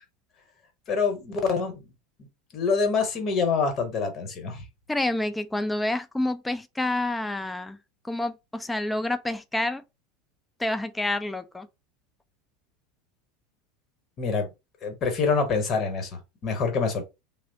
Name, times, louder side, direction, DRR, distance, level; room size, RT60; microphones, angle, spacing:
voice 1, 0.9-1.8 2.5-4.7 14.2-14.5 14.8-17.1, left 5 dB, 35° left, 1.0 m, -26 dB
voice 2, 4.9-7.8 8.0-9.8 10.6-11.7, left 1 dB, 10° left, 0.4 m, -28 dB
3.1 x 2.0 x 2.7 m
figure-of-eight pair, 75°, 0 cm